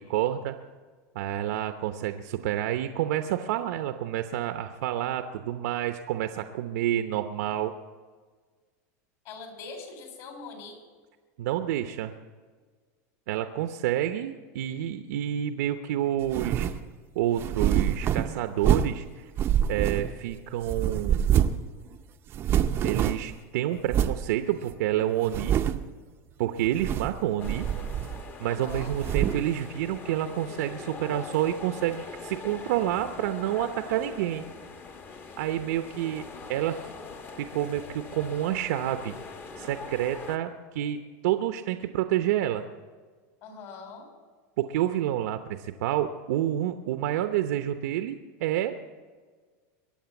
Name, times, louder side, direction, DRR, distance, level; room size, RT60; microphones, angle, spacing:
voice 1, 0.1-0.5 1.1-7.7 11.4-12.1 13.3-16.7 17.1-19.3 19.7-21.3 22.8-25.6 26.4-27.7 28.4-34.5 35.4-36.2 36.5-36.8 37.5-39.1 39.6-42.6 44.6-48.7, right 12 dB, 75° right, 8 dB, 0.8 m, -28 dB
voice 2, 9.2-10.8 28.5-28.9 33.6-34.2 43.4-44.1, left 4 dB, 50° left, 5 dB, 4.1 m, -43 dB
sound 1, 16.3-16.8 17.4-19.0 19.4-20.3 20.7-21.7 21.9-22.0 22.3-23.3 23.9-24.2 24.7-24.8 25.2-25.9 26.7-27.2 27.4-28.3 28.7-29.5, right 10 dB, 25° right, 0.6 m, -26 dB
sound 2, 27.4-40.4, left 4 dB, 25° left, 1.1 m, -42 dB
22.5 x 8.7 x 7.1 m, 1.5 s
supercardioid pair, 160°, 9 cm